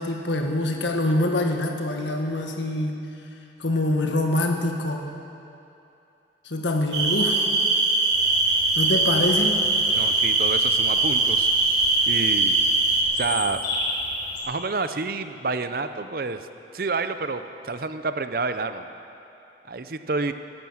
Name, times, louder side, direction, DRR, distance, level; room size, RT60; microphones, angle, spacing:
voice 1, 0.0-3.0 3.6-5.1 6.4-7.4 8.8-9.6, left 1 dB, 80° left, 2 dB, 1.6 m, -25 dB
sound 1, 6.9-13.0, right 3 dB, 70° right, 3.3 m, -21 dB
Bird vocalization bird call bird song, 8.1-14.4, left 2 dB, 65° left, 4.1 m, -36 dB
voice 2, 9.9-11.5 12.1-12.6 13.1-13.6 14.4-16.5 16.7-18.9 19.7-20.3, right 3 dB, 50° right, 10 dB, 0.6 m, -29 dB
17.0 x 10.5 x 7.2 m, 2.8 s
head